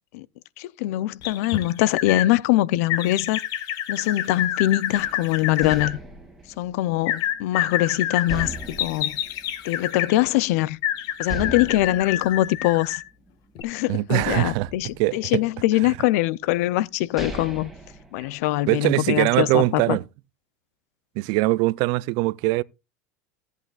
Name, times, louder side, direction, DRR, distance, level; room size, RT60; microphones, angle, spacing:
voice 1, 0.6-3.4 3.9-6.0 6.6-9.1 9.7-10.8 11.2-13.0 13.6-17.7 18.1-20.0, left 16 dB, 75° left, 0.5 m, -23 dB
sound 1, 1.2-2.3 2.9-5.9 7.1-10.2 10.8-13.1 13.6-13.7, left 11 dB, 55° left, 1.1 m, -28 dB
sound 2, 4.9-7.8 8.3-10.2 10.6-10.7 11.3-13.6 14.2-15.8 16.5-16.6 17.0-18.8, right 1 dB, ahead, 2.5 m, -38 dB
voice 2, 13.9-14.7 15.0-15.4 15.8-16.0 18.7-20.0 21.2-22.6, right 21 dB, 60° right, 0.4 m, -22 dB
16.5 x 8.2 x 2.3 m
supercardioid pair, 120°, 8 cm